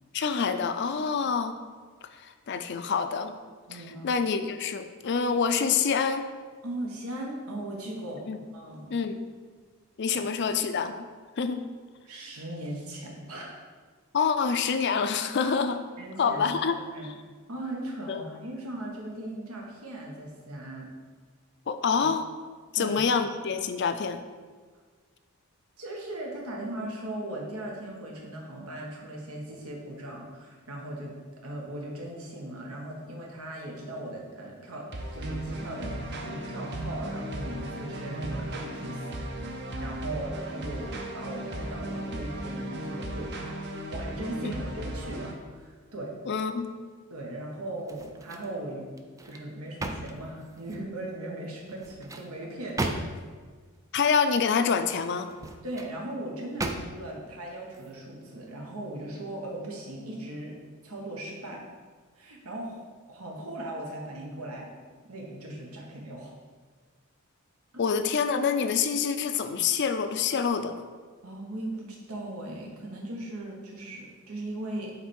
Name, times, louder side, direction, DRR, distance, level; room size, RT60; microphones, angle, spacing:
voice 1, 0.1-1.6 2.2-3.4 3.7-6.3 8.3-8.4 8.9-9.2 10.0-11.1 11.4-11.6 14.1-15.8 16.2-16.7 18.1-18.2 21.7-22.3 22.7-24.2 44.4-44.6 46.3-46.7 53.9-55.3 67.8-70.9, left 6 dB, 50° left, 9 dB, 0.4 m, -26 dB
voice 2, 3.7-4.1 6.6-8.3 8.5-8.9 12.0-13.5 16.0-17.1 17.5-20.9 21.9-22.0 22.7-23.0 25.8-31.2 31.4-35.9 36.2-43.6 43.9-46.1 47.1-48.9 49.2-53.2 55.6-61.6 62.2-64.7 65.0-66.3 67.7-67.8 71.2-74.9, right 1 dB, 90° right, -1 dB, 1.4 m, -38 dB
sound 1, 34.9-45.3, right 1 dB, 50° right, 0.8 m, -36 dB
sound 2, 47.8-48.6 49.0-50.9 51.7-53.4 55.2-55.9 56.6-57.2 57.7-57.9, right 2 dB, 15° right, 0.3 m, -36 dB
8.3 x 3.4 x 4.4 m, 1.5 s
head